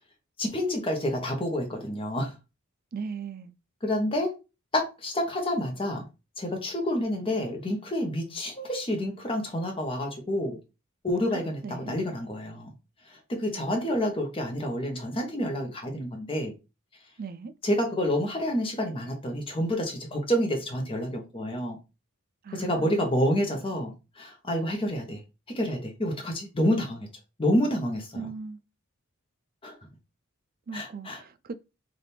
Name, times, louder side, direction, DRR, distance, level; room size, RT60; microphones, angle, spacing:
voice 1, 0.4-2.3 3.8-4.3 4.7-6.1 6.4-10.6 11.0-12.7 13.1-16.5 17.6-21.8 22.5-25.2 25.5-27.1 27.4-28.3 29.6-29.8 30.7-31.2, equal, 25° left, 0.8 m, -28 dB
voice 2, 2.9-3.5 11.3-12.0 13.6-13.7 17.2-17.5 22.4-23.1 28.1-28.6 30.7-31.6, right 5 dB, 45° right, 0.4 m, -38 dB
3.4 x 2.5 x 4.2 m
head